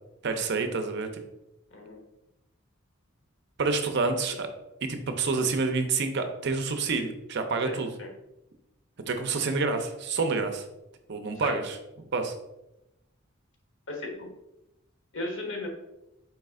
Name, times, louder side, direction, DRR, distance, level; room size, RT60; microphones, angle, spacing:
voice 1, 0.2-1.1 3.6-4.5 4.8-7.9 9.1-10.6 11.1-11.8 12.1-12.3, right 4 dB, 55° right, 6 dB, 0.5 m, -28 dB
voice 2, 7.6-8.1 11.4-11.6 13.9-14.3 15.1-15.7, left 2 dB, 60° left, 1 dB, 1.1 m, -36 dB
4.6 x 3.2 x 3.6 m, 0.91 s
head